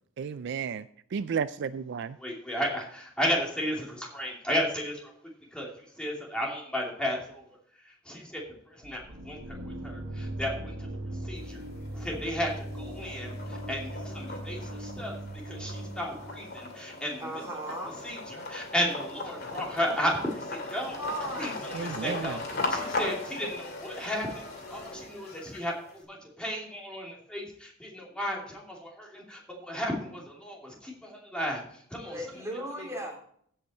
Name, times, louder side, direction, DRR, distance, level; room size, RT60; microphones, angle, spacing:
voice 1, 0.2-2.2 21.7-22.4, right 6 dB, 60° right, 14 dB, 0.4 m, -32 dB
voice 2, 2.2-5.1 5.5-7.4 7.8-11.6 11.9-15.2 15.4-17.4 18.0-21.0 21.3-22.4 22.7-32.4, equal, 5° left, -2 dB, 2.7 m, -34 dB
sound 1, 8.8-16.7, right 1 dB, 80° right, 1.6 m, -39 dB
sound 2, 11.4-12.0 12.4-25.9, left 2 dB, 50° left, 2.4 m, -38 dB
voice 3, 17.2-18.0 20.9-21.6 32.0-33.2, right 1 dB, 15° right, -1 dB, 2.8 m, -36 dB
15.5 x 5.7 x 4.3 m, 0.62 s
head